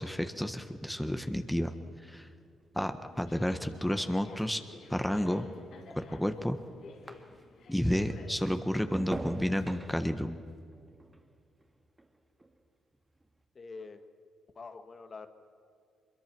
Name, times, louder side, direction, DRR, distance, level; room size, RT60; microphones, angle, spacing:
voice 1, 0.0-1.7 2.0-2.3 2.7-4.6 4.9-5.4 5.9-6.6 7.7-10.4, equal, 5° left, 7 dB, 1.5 m, -31 dB
sound 1, 1.0-7.7 8.1-12.6 12.9-13.4, right 1 dB, 20° right, 2.1 m, -46 dB
sound 2, 3.1-9.9, left 4 dB, 70° left, 2.8 m, -53 dB
voice 2, 13.5-14.0 14.5-15.3, left 4 dB, 45° left, 8 dB, 1.6 m, -45 dB
24.0 x 22.5 x 6.2 m, 2.3 s
supercardioid pair, 60°, 0 cm